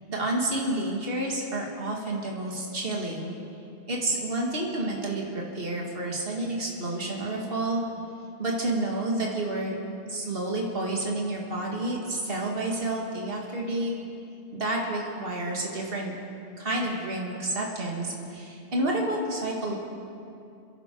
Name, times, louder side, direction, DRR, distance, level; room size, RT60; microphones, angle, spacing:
voice 1, 0.1-3.4 3.9-7.8 8.4-9.8 10.1-14.0 14.5-16.1 16.6-19.8, right 1 dB, 60° right, -2 dB, 2.2 m, -29 dB
27.5 x 11.0 x 4.6 m, 2.6 s
omnidirectional pair, 1.1 m